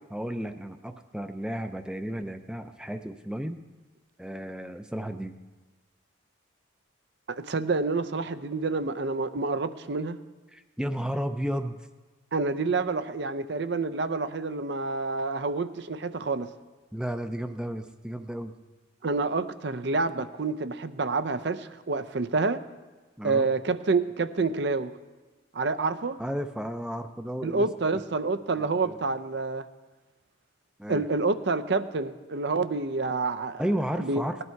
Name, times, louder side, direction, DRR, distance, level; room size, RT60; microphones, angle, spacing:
voice 1, 0.1-3.6 4.2-5.4 10.5-11.9 16.9-18.6 23.2-23.5 26.2-27.7 28.6-29.0 30.8-31.1 33.6-34.4, equal, 5° right, 8 dB, 0.5 m, -33 dB
voice 2, 7.3-10.2 12.3-16.5 19.0-22.6 23.2-24.9 25.5-26.2 27.4-29.7 30.9-33.6 34.0-34.2, right 3 dB, 55° right, 12 dB, 0.6 m, -28 dB
18.0 x 11.0 x 4.6 m, 1.2 s
head